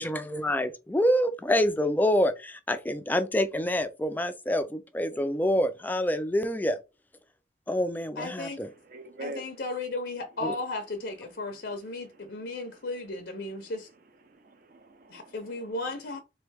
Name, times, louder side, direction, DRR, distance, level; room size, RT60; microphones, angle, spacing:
voice 1, 0.0-6.8 7.7-8.7 10.4-10.5, equal, 10° left, 0.4 m, -27 dB
voice 2, 8.2-8.6 9.2-13.9 15.1-16.2, left 2 dB, 65° left, 0.6 m, -35 dB
voice 3, 8.9-9.4 12.4-12.7 14.3-15.7, right 1 dB, 50° right, 0.7 m, -44 dB
3.8 x 3.1 x 3.3 m
head